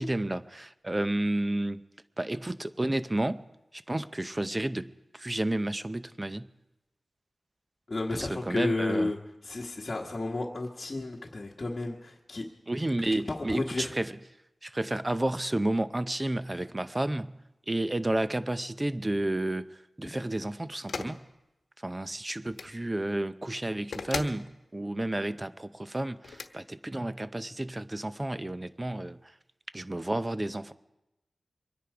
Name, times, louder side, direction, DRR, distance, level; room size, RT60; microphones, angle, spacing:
voice 1, 0.0-1.8 2.2-3.4 3.7-6.5 8.1-9.1 12.7-14.1 14.6-17.4 17.7-19.7 20.0-21.3 21.8-29.2 29.7-30.7, right 1 dB, 20° right, 0.6 m, -31 dB
voice 2, 7.9-9.2 9.4-12.4 13.3-13.9, left 2 dB, 35° left, 1.4 m, -32 dB
sound 1, 20.9-21.2 22.4-22.7 23.9-24.4 26.2-26.5, left 4 dB, 85° left, 1.0 m, -36 dB
24.0 x 10.0 x 4.9 m
wide cardioid pair, 80°, 0 cm